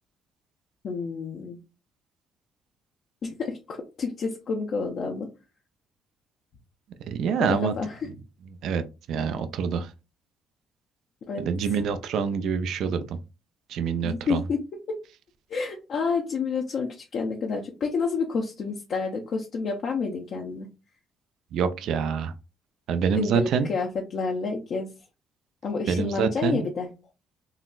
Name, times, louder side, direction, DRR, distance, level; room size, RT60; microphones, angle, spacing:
voice 1, 0.8-1.6 3.2-5.3 7.4-8.1 11.3-11.8 14.0-14.6 14.9-15.0 15.5-20.7 23.1-24.9 25.6-26.9, left 4 dB, 60° left, 0.6 m, -29 dB
voice 2, 7.1-7.7 8.6-8.8 9.1-9.9 11.4-13.2 13.7-14.4 21.5-22.3 22.9-23.7 25.9-26.7, right 7 dB, 70° right, 0.4 m, -26 dB
3.8 x 2.0 x 2.4 m
supercardioid pair, 65°, 0 cm